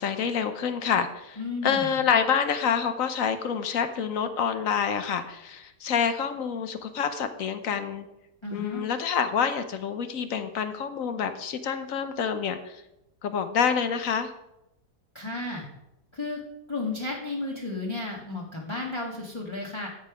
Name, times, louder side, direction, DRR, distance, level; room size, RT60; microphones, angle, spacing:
voice 1, 0.0-8.1 8.5-12.6 13.2-14.3, left 7 dB, 60° left, 9 dB, 1.0 m, -27 dB
voice 2, 1.4-2.0 8.4-8.8 15.1-15.7 16.1-16.4 16.7-19.9, left 2 dB, 20° left, -3 dB, 1.3 m, -33 dB
14.0 x 5.4 x 4.9 m, 0.89 s
omnidirectional pair, 1.8 m